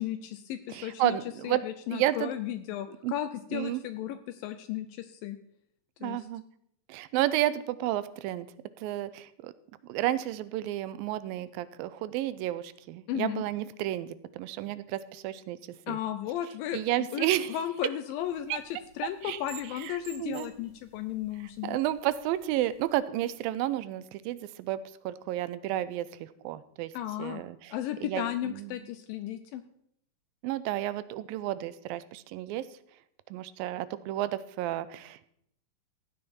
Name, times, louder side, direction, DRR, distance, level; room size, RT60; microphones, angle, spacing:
voice 1, 0.0-1.2 1.4-5.4 6.0-6.3 13.1-13.4 15.9-21.8 26.9-27.4 27.7-29.6, left 12 dB, 80° left, 8 dB, 2.3 m, -35 dB
voice 2, 0.7-1.6 1.9-2.3 3.0-3.1 3.5-3.8 6.0-6.4 6.9-8.5 8.8-9.5 9.9-15.6 15.9-16.0 16.7-17.6 18.5-18.6 19.2-19.4 20.2-20.5 21.6-24.8 25.0-26.9 27.2-27.7 28.0-28.7 30.4-32.7 33.3-35.3, right 14 dB, 85° right, 16 dB, 2.4 m, -31 dB
sound 1, 18.2-23.0, right 9 dB, 70° right, 1.4 m, -53 dB
15.5 x 9.5 x 4.3 m, 0.72 s
omnidirectional pair, 4.1 m